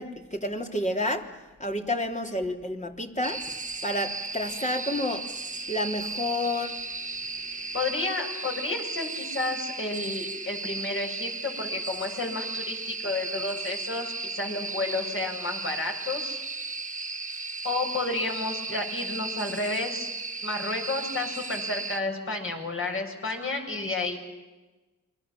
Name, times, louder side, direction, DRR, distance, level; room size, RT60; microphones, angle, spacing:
voice 1, 0.0-3.5 3.8-5.3 5.7-6.8, left 1 dB, 20° left, 3 dB, 3.3 m, -30 dB
sound 1, 3.2-22.0, right 3 dB, 25° right, 1.6 m, -35 dB
voice 2, 7.7-16.4 17.6-20.1 20.4-24.2, left 2 dB, 40° left, 2 dB, 7.6 m, -31 dB
29.5 x 23.5 x 7.5 m, 1.2 s
cardioid pair, 70°, 32 cm